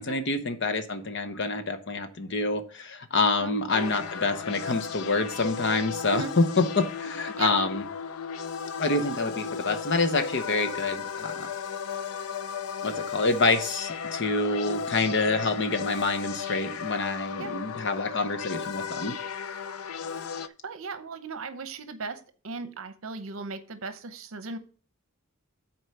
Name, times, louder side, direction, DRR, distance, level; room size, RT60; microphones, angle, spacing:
voice 1, 0.0-7.8 8.8-11.5 12.8-19.1, left 3 dB, 55° left, 9 dB, 0.9 m, -27 dB
sound 1, 3.7-20.5, left 6 dB, 80° left, 0.5 m, -35 dB
voice 2, 20.6-24.6, right 4 dB, 65° right, 10 dB, 0.8 m, -37 dB
7.6 x 4.4 x 6.7 m, 0.40 s
head